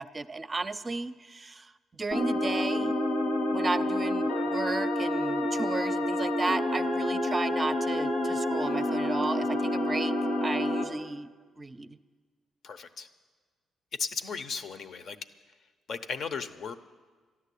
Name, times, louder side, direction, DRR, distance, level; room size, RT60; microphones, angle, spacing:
voice 1, 0.0-3.0 3.5-10.1 10.4-11.3 11.6-12.0, right 3 dB, 25° right, 12 dB, 0.6 m, -34 dB
sound 1, 2.1-10.8, left 1 dB, 85° left, 2.0 m, -28 dB
voice 2, 12.6-13.1 13.9-15.2 15.9-16.7, left 5 dB, 60° left, 11 dB, 0.8 m, -35 dB
13.0 x 11.0 x 8.4 m, 1.4 s
cardioid pair, 90°, 0 cm